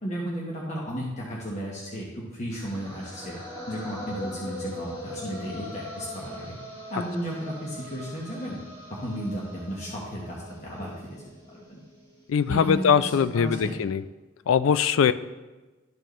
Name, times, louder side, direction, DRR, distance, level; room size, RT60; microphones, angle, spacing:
voice 1, 0.0-3.4 3.7-6.6 6.9-8.6 8.9-11.8 12.5-13.8, equal, 35° left, -4 dB, 1.0 m, -34 dB
sound 1, 2.5-12.6, left 1 dB, 20° left, 2.0 m, -41 dB
voice 2, 12.3-14.0 14.5-15.1, left 7 dB, 85° left, 14 dB, 0.3 m, -21 dB
12.0 x 4.5 x 3.1 m, 1.2 s
head